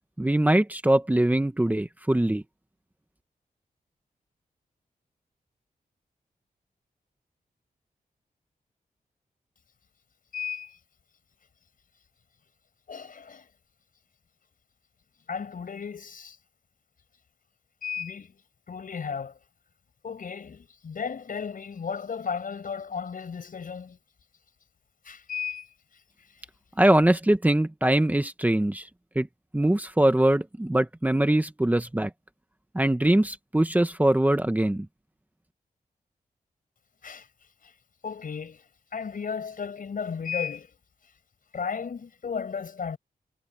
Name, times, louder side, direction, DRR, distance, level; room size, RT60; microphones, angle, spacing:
voice 1, 0.2-2.4 26.8-28.9 29.1-29.3 29.5-32.1 32.7-34.9, right 1 dB, 10° right, 1.3 m, -22 dB
voice 2, 10.3-10.8 12.9-13.5 15.3-16.4 17.8-18.4 18.7-19.4 20.0-24.0 25.0-25.7 37.0-37.3 37.6-37.7 38.0-38.6 38.9-40.7 41.5-43.0, left 6 dB, 65° left, 5.6 m, -34 dB
wide cardioid pair, 135°, 15 cm